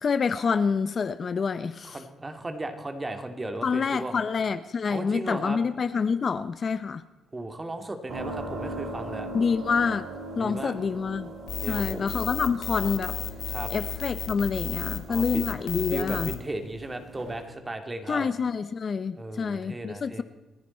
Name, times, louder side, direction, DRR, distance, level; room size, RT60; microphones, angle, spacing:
voice 1, 0.0-2.0 3.6-7.0 9.3-10.1 10.4-11.3 11.7-13.2 13.7-16.3 18.1-20.2, left 5 dB, 45° left, 13 dB, 0.6 m, -27 dB
voice 2, 1.9-4.2 4.9-5.6 7.3-9.3 10.4-10.7 11.6-12.5 13.5-13.7 15.1-15.5 15.9-18.3 19.2-20.2, right 2 dB, 20° right, 7 dB, 2.1 m, -36 dB
sound 1, 8.1-17.4, right 1 dB, 60° right, 5.1 m, -40 dB
sound 2, 11.5-16.4, left 11 dB, 80° left, 1.9 m, -33 dB
29.0 x 10.0 x 4.3 m, 1.2 s
cardioid pair, 90°, 0 cm